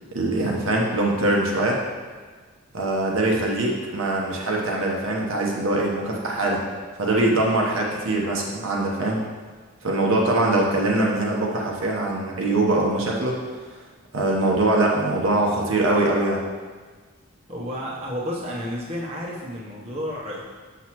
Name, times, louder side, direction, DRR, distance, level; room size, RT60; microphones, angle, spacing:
voice 1, 0.1-1.8 2.7-6.6 7.0-9.2 9.8-13.4 14.1-16.4, right 2 dB, 65° right, -2 dB, 0.9 m, -22 dB
voice 2, 17.5-20.4, equal, 30° right, -5 dB, 0.9 m, -31 dB
7.0 x 6.0 x 3.0 m, 1.4 s
head